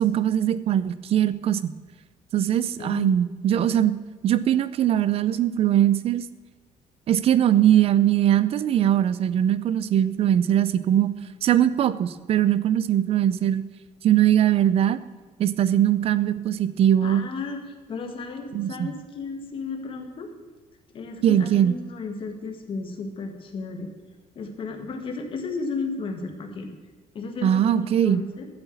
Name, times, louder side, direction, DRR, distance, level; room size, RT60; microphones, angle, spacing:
voice 1, 0.0-1.7 2.3-3.9 4.2-6.2 7.1-11.1 11.4-13.6 14.0-15.0 15.4-17.2 18.5-18.9 21.2-21.7 27.4-28.2, right 10 dB, 45° right, 15 dB, 0.5 m, -21 dB
voice 2, 2.8-3.3 17.0-20.3 20.9-23.9 24.4-26.7 27.1-28.5, left 4 dB, 40° left, 4 dB, 1.6 m, -34 dB
12.5 x 7.9 x 7.0 m, 1.4 s
cardioid pair, 160°, 14 cm